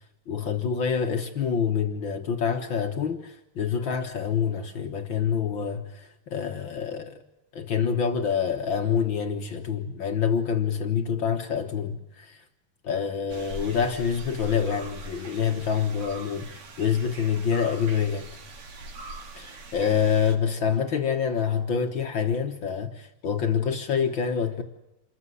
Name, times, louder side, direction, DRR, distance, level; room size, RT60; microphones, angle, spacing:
voice 1, 0.3-7.2 7.5-12.4 12.8-18.3 19.4-24.6, left 7 dB, 55° left, 1.3 m, -26 dB
sound 1, 13.3-20.3, right 2 dB, 55° right, 3.3 m, -42 dB
27.5 x 14.5 x 9.7 m
omnidirectional pair, 3.9 m